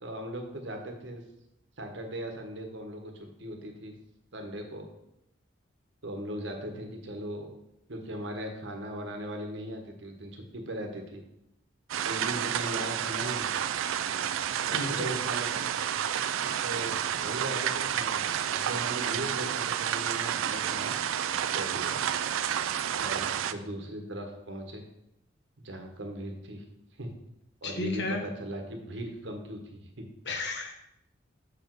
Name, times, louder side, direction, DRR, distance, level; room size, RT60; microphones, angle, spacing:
voice 1, 0.0-1.2 1.8-3.9 4.3-4.9 6.0-7.5 7.9-11.2 12.0-13.5 14.7-15.7 16.6-18.2 18.5-20.9 21.4-22.0 22.9-24.8 25.6-26.6 27.0-27.1 27.6-30.1, right 1 dB, 60° right, 3 dB, 1.2 m, -38 dB
sound 1, 11.9-23.5, right 9 dB, 85° right, 0.4 m, -30 dB
voice 2, 14.6-15.2 27.6-28.2 30.2-30.8, left 2 dB, 55° left, 4 dB, 1.0 m, -33 dB
6.6 x 4.8 x 4.6 m, 0.82 s
head